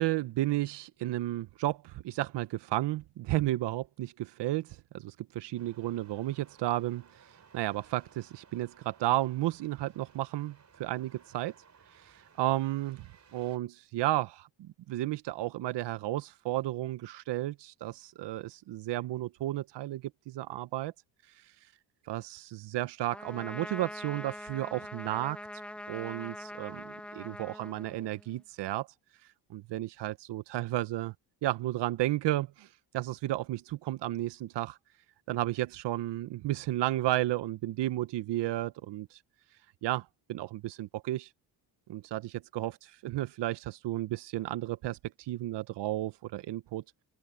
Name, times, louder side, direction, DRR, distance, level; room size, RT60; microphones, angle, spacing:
voice 1, 0.0-7.3 7.5-11.5 11.9-20.9 22.1-25.4 25.9-28.9 29.2-31.1 31.4-32.7 32.9-34.8 35.3-39.2 39.8-41.3 41.9-42.8 43.0-46.8, right 15 dB, 75° right, 0.8 m, -33 dB
sound 1, 5.6-13.6, right 6 dB, 40° right, 4.4 m, -60 dB
Trumpet, 23.1-28.4, left 1 dB, 5° left, 0.8 m, -43 dB
open air
cardioid pair, 110°, 42 cm